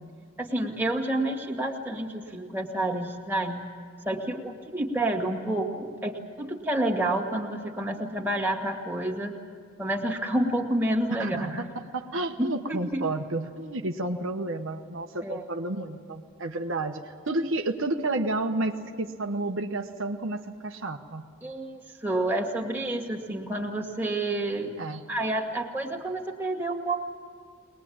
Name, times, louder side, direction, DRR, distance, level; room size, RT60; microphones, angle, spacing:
voice 1, 0.4-3.6 4.1-9.3 9.8-11.6 12.4-13.0 15.2-15.4 21.4-24.7 25.1-27.0, right 1 dB, 10° right, 0 dB, 2.1 m, -29 dB
voice 2, 11.7-21.2 24.8-25.0, right 2 dB, 65° right, 4 dB, 1.0 m, -31 dB
22.5 x 20.0 x 8.7 m, 2.2 s
head